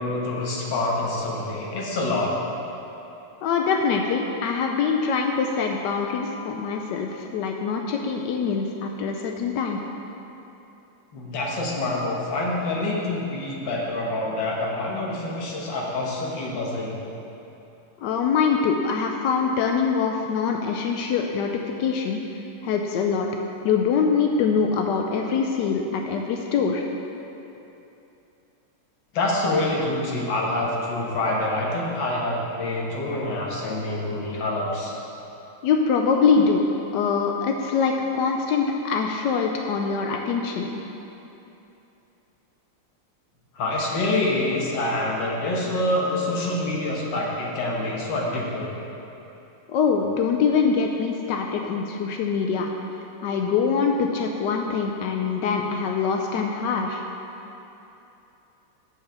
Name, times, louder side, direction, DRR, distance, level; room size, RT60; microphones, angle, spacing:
voice 1, 0.0-2.3 11.1-17.0 29.1-34.9 43.5-48.7, left 2 dB, 60° left, -3 dB, 1.8 m, -26 dB
voice 2, 3.4-9.8 18.0-21.5 21.8-22.2 22.6-23.3 23.6-26.8 35.6-36.7 36.9-40.8 49.7-52.7 53.2-57.0, left 5 dB, 90° left, 2 dB, 0.9 m, -24 dB
7.7 x 4.8 x 6.6 m, 2.9 s
omnidirectional pair, 2.4 m